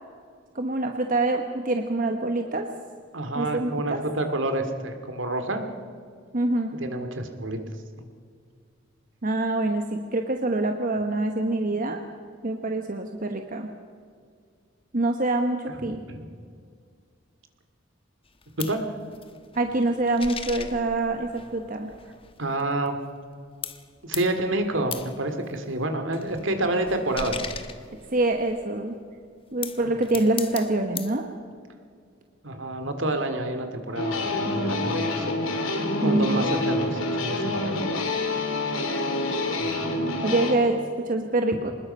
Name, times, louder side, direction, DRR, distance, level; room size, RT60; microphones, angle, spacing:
voice 1, 0.5-2.7 3.3-4.1 6.3-6.8 9.2-12.0 12.4-13.7 14.9-16.0 19.5-21.9 28.1-28.9 29.5-31.3 36.0-36.5 40.2-41.7, right 2 dB, 40° right, 5 dB, 1.1 m, -25 dB
voice 2, 3.1-5.6 6.8-7.6 15.7-16.3 18.7-18.9 22.4-22.9 24.0-27.5 29.8-29.9 32.4-35.3 36.0-37.8 39.6-40.1, right 1 dB, 65° right, 6 dB, 2.3 m, -28 dB
sound 1, 18.3-23.4 23.6-28.6 29.3-31.2, left 6 dB, 25° left, 1.1 m, -39 dB
sound 2, 34.0-40.6, left 2 dB, 80° left, 3.2 m, -27 dB
26.0 x 20.0 x 5.5 m, 2.1 s
head